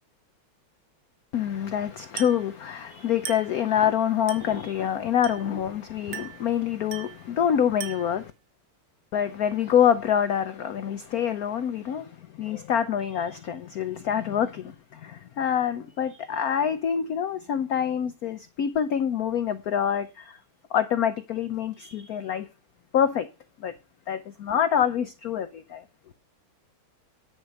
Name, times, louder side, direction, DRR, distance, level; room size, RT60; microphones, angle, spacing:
voice 1, 1.3-8.3 9.1-20.4 20.7-22.5 22.9-23.3 23.6-23.7 24.1-25.8, left 9 dB, 70° left, 0.8 m, -26 dB
Glass, 2.2-2.5 3.3-3.6 4.3-4.6 5.2-5.6 6.1-6.5 6.9-7.2 7.8-8.2, right 8 dB, 65° right, 1.9 m, -39 dB
9.7 x 4.7 x 6.4 m
omnidirectional pair, 2.2 m